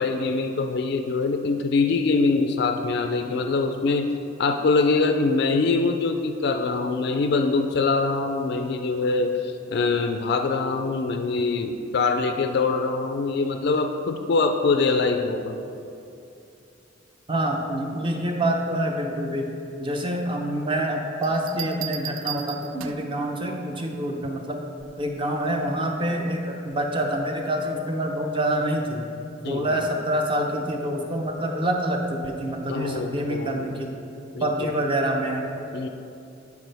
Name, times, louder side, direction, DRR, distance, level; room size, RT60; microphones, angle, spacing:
voice 1, 0.0-4.1 4.4-15.6 29.4-29.8 32.7-33.7 34.3-34.7 35.7-35.9, left 3 dB, 60° left, 6 dB, 0.4 m, -24 dB
voice 2, 17.3-24.6 25.0-29.0 29.5-33.9 34.4-35.4, right 1 dB, 25° right, 2 dB, 0.7 m, -26 dB
sound 1, 21.2-23.2 24.8-25.1, right 11 dB, 90° right, 0.4 m, -36 dB
12.0 x 4.6 x 3.4 m, 2.6 s
head